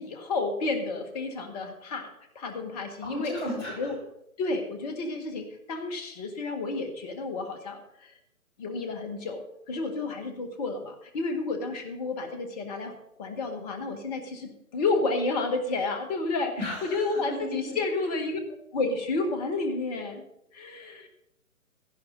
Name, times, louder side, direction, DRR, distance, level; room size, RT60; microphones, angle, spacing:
voice 1, 0.0-2.1 2.3-3.4 3.8-4.0 4.4-8.1 8.6-18.4 18.7-20.2 20.5-21.1, left 3 dB, 25° left, 6 dB, 1.7 m, -31 dB
voice 2, 3.0-3.9 16.6-17.7 20.8-20.9, left 1 dB, 40° left, -4 dB, 6.5 m, -35 dB
16.5 x 14.0 x 4.0 m, 0.84 s
figure-of-eight pair, 140°, 44 cm